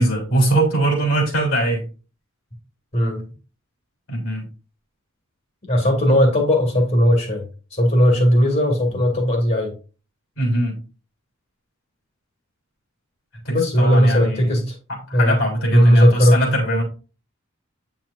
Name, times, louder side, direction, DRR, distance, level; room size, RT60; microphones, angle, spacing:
voice 1, 0.0-1.9 4.1-4.4 10.4-10.8 13.4-14.6 14.9-16.8, right 1 dB, 70° left, 1 dB, 3.5 m, -21 dB
voice 2, 5.7-9.8 13.5-14.7 15.1-15.4 15.7-16.4, equal, 45° left, 1 dB, 2.1 m, -17 dB
8.7 x 6.1 x 2.6 m, 0.34 s
head